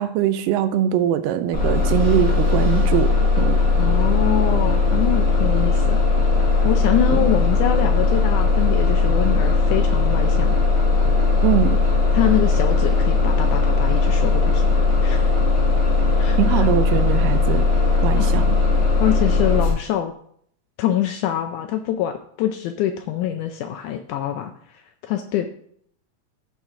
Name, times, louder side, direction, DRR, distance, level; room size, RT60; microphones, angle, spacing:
voice 1, 0.0-3.6 7.1-7.3 11.4-11.8 16.4-17.7 18.0-18.6, right 10 dB, 80° right, 10 dB, 2.1 m, -22 dB
Bus, 1.5-19.7, left 4 dB, 35° left, 4.8 m, -18 dB
voice 2, 3.8-6.0 6.6-10.6 12.1-14.7 15.0-15.3 16.2-16.7 18.2-18.4 19.0-20.1 20.8-25.5, left 11 dB, 80° left, 7 dB, 1.8 m, -25 dB
13.5 x 4.6 x 3.7 m, 0.64 s
omnidirectional pair, 4.0 m